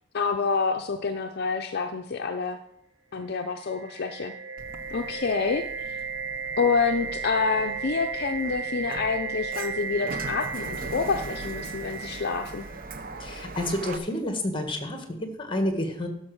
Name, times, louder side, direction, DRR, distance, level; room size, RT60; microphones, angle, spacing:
voice 1, 0.1-2.6 3.1-4.3 4.9-6.0 6.6-12.7, left 5 dB, 55° left, 6 dB, 0.5 m, -27 dB
sound 1, 3.4-13.3, right 5 dB, 85° right, 1.8 m, -35 dB
Sliding door, 4.6-14.0, right 3 dB, 45° right, 0.7 m, -41 dB
voice 2, 13.2-16.1, left 1 dB, 25° left, 5 dB, 1.5 m, -29 dB
12.0 x 5.2 x 6.3 m, 0.77 s
head